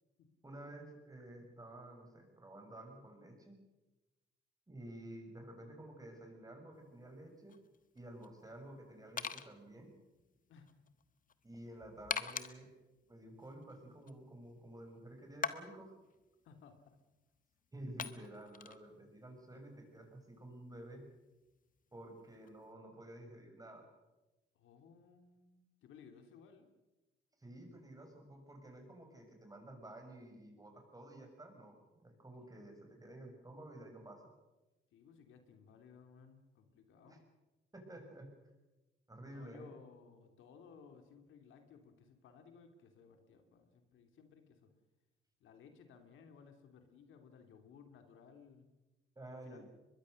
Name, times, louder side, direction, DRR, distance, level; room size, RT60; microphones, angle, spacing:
voice 1, 0.4-3.6 4.7-7.6 7.9-9.9 11.4-12.7 13.1-15.9 17.7-21.0 21.9-23.9 27.4-34.2 37.0-37.2 37.7-38.3 39.1-39.7 49.1-49.7, right 1 dB, 15° right, 4 dB, 6.5 m, -52 dB
sound 1, 6.8-22.7, left 6 dB, 45° left, 1.3 m, -47 dB
voice 2, 16.4-17.0 24.5-26.7 32.4-32.7 34.9-37.2 39.2-44.7 45.4-48.7 49.3-49.7, left 6 dB, 80° left, 6 dB, 2.9 m, -59 dB
23.5 x 21.5 x 6.5 m, 1.1 s
cardioid pair, 90°, 20 cm